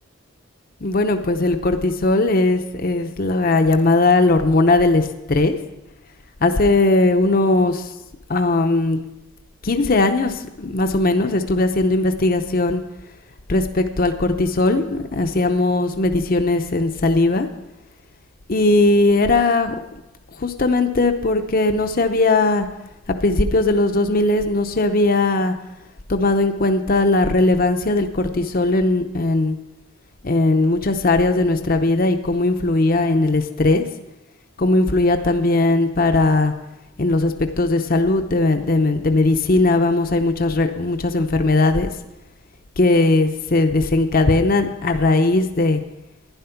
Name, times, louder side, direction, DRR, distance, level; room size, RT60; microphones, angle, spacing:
voice 1, 0.8-5.6 6.4-7.9 8.3-9.0 9.6-12.8 13.5-17.5 18.5-19.8 20.4-22.7 23.2-25.6 26.1-29.6 30.2-33.9 34.6-36.5 37.0-41.9 42.8-45.8, left 2 dB, 45° left, 6 dB, 0.7 m, -18 dB
11.5 x 10.0 x 5.8 m, 0.96 s
head